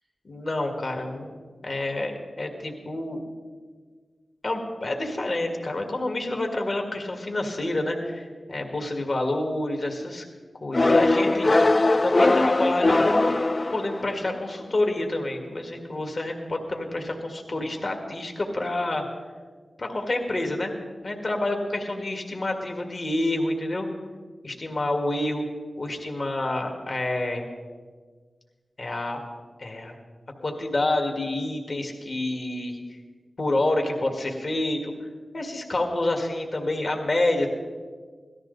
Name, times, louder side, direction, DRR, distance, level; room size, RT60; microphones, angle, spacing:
voice 1, 0.2-3.2 4.4-10.2 10.6-13.3 13.7-19.0 19.8-20.7 21.0-23.9 24.4-25.4 25.8-27.5 28.8-29.2 29.6-29.9 30.4-33.0 33.4-34.9 35.3-37.5, left 2 dB, 60° left, 3 dB, 1.9 m, -28 dB
sound 1, 10.7-14.3, left 2 dB, 40° left, 0.4 m, -20 dB
17.5 x 13.5 x 4.0 m, 1.5 s
cardioid pair, 50°, 0 cm